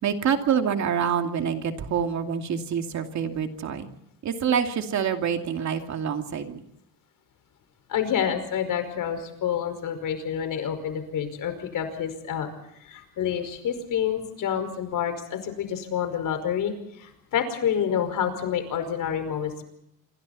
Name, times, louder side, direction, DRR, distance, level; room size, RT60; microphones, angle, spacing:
voice 1, 0.0-3.9 4.2-6.6, right 7 dB, 50° right, 5 dB, 2.6 m, -26 dB
voice 2, 7.9-19.6, left 8 dB, 60° left, 8 dB, 5.2 m, -28 dB
27.0 x 25.0 x 4.3 m, 0.75 s
cardioid pair, 135°, 36 cm